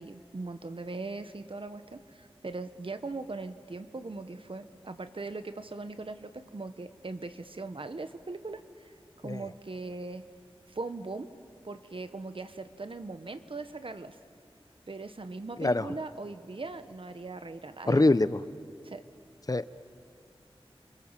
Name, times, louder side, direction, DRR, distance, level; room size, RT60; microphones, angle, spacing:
voice 1, 0.0-8.9 9.2-10.3 10.7-11.3 11.6-14.2 14.9-18.1 18.8-19.0, right 3 dB, 65° right, 10 dB, 1.3 m, -40 dB
voice 2, 17.9-18.4 19.5-19.6, left 2 dB, 40° left, 14 dB, 0.7 m, -24 dB
30.0 x 25.5 x 7.5 m, 2.3 s
wide cardioid pair, 60°, 10 cm